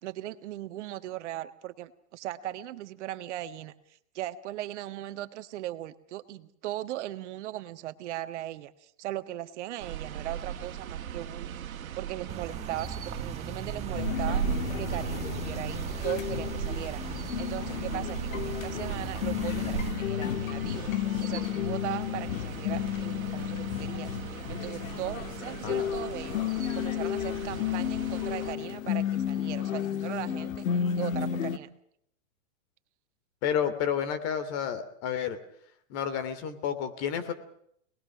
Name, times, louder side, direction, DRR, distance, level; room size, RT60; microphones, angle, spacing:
voice 1, 0.0-3.7 4.1-11.6 11.9-14.4 14.8-17.0 17.4-20.9 21.2-26.4 26.7-31.7, right 14 dB, 55° right, 10 dB, 1.6 m, -38 dB
sound 1, 9.8-28.6, right 9 dB, 85° right, 2.0 m, -38 dB
sound 2, 12.3-19.9, right 6 dB, 15° right, 1.5 m, -39 dB
sound 3, 13.9-31.6, left 9 dB, 70° left, 2.1 m, -32 dB
voice 2, 33.4-35.4 35.9-37.3, left 8 dB, 35° left, 11 dB, 3.0 m, -30 dB
26.0 x 20.0 x 6.2 m, 0.67 s
hypercardioid pair, 140°, 41 cm